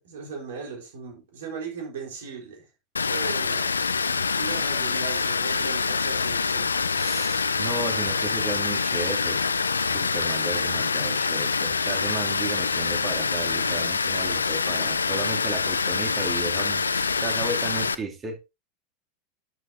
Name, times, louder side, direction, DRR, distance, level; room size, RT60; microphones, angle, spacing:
voice 1, 0.0-2.6 3.1-3.8 4.4-6.7, right 5 dB, 65° right, 4.4 m, -37 dB
Water, 3.0-17.9, left 5 dB, 80° left, 0.6 m, -25 dB
voice 2, 6.9-9.4 9.9-18.4, right 3 dB, 25° right, 2.8 m, -34 dB
11.5 x 8.1 x 2.8 m
figure-of-eight pair, 85°, 0 cm